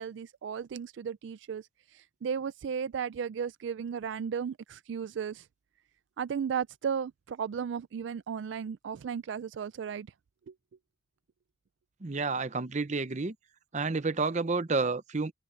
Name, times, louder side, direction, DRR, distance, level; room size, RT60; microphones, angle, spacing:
voice 1, 0.0-5.5 6.2-10.1 10.5-10.6, right 7 dB, 70° right, 0.3 m, -35 dB
voice 2, 12.0-13.3 13.7-15.3, right 3 dB, 35° right, 0.7 m, -30 dB
open air
head